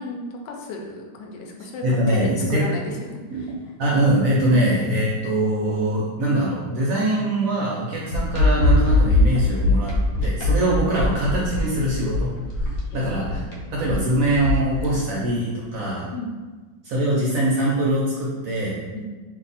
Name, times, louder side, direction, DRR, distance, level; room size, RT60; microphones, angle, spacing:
voice 1, 0.0-3.7 4.5-4.6 12.9-13.5 16.1-16.3 18.9-19.0, left 3 dB, 80° left, 1 dB, 1.2 m, -34 dB
voice 2, 1.8-2.6 3.3-3.4 3.8-9.9 10.2-12.3 12.6-12.7 12.9-13.4 13.7-16.1 16.8-18.8, right 1 dB, 70° right, -5 dB, 0.8 m, -22 dB
sound 1, 8.1-14.9, left 2 dB, 65° left, 0.9 m, -21 dB
2.7 x 2.6 x 4.0 m, 1.3 s
omnidirectional pair, 1.9 m